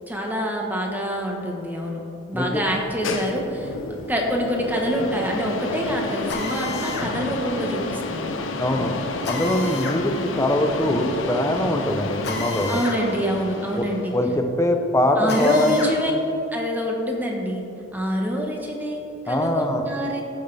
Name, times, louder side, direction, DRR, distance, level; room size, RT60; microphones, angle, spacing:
voice 1, 0.1-2.0 2.3-8.3 12.7-14.1 15.2-16.1 16.5-17.6 17.9-20.2, equal, 10° right, 0 dB, 1.3 m, -26 dB
sound 1, 2.6-14.3, left 3 dB, 85° left, 0.8 m, -31 dB
Drill, 6.3-7.1 9.2-10.0 12.2-13.0 13.4-13.5 15.3-16.0, left 3 dB, 60° left, 1.2 m, -31 dB
voice 2, 8.6-8.9 9.2-12.8 13.7-15.9 19.3-19.9, left 1 dB, 15° left, 4 dB, 0.7 m, -23 dB
15.0 x 6.4 x 3.4 m, 2.9 s
head